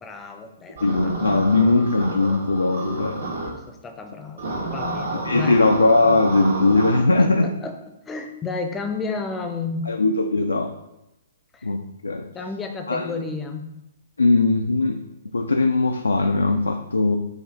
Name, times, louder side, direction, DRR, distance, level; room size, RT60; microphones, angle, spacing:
voice 1, 0.0-1.1 3.7-5.7 7.1-7.8 8.0-9.9 11.5-11.7 12.3-13.8, left 4 dB, 15° left, 5 dB, 0.5 m, -32 dB
voice 2, 0.8-3.2 5.3-7.5 9.9-10.7 11.6-12.3 12.9-13.2 14.2-15.0 15.3-17.2, left 2 dB, 80° left, 4 dB, 0.3 m, -19 dB
sound 1, 0.8-3.5 4.4-7.0, right 1 dB, 65° right, 0.9 m, -30 dB
5.1 x 2.4 x 3.8 m, 0.91 s
figure-of-eight pair, 120°, 0 cm